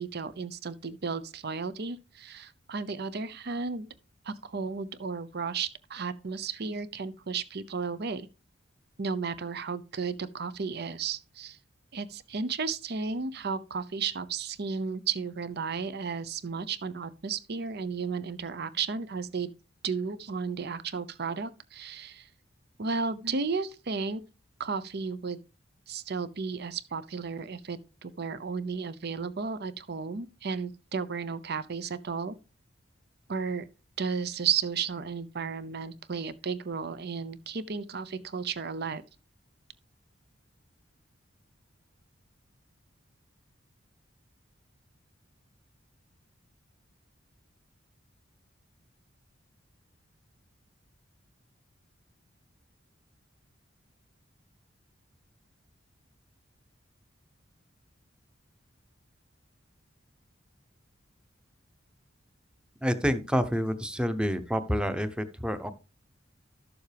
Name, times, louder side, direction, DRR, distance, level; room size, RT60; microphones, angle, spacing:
voice 1, 0.0-3.9 4.2-8.3 9.0-11.6 11.9-19.5 19.8-22.3 22.8-24.2 24.6-25.4 25.9-32.4 33.3-33.7 34.0-39.0, right 5 dB, 55° right, 0.7 m, -33 dB
voice 2, 62.8-65.7, equal, 5° right, 0.8 m, -28 dB
12.5 x 7.0 x 3.4 m
head